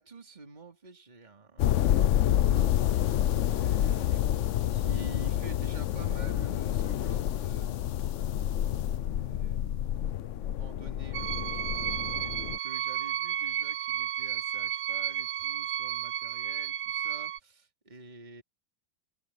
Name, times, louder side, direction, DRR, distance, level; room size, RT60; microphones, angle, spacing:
voice 1, 0.0-2.9 3.2-4.3 4.7-8.1 8.9-11.6 12.2-18.4, right 3 dB, 25° right, 3.0 m, -48 dB
sound 1, 1.6-12.6, left 11 dB, 80° left, 0.6 m, -28 dB
sound 2, 11.1-17.4, right 10 dB, 60° right, 1.1 m, -32 dB
omnidirectional pair, 2.0 m